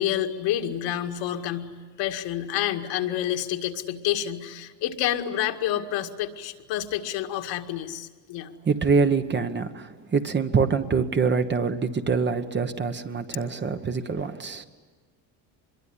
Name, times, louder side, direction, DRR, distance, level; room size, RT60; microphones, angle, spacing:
voice 1, 0.0-8.5, left 11 dB, 70° left, 2.1 m, -28 dB
voice 2, 8.6-14.6, right 5 dB, 25° right, 1.2 m, -25 dB
25.0 x 22.5 x 10.0 m
cardioid pair, 120°, 44 cm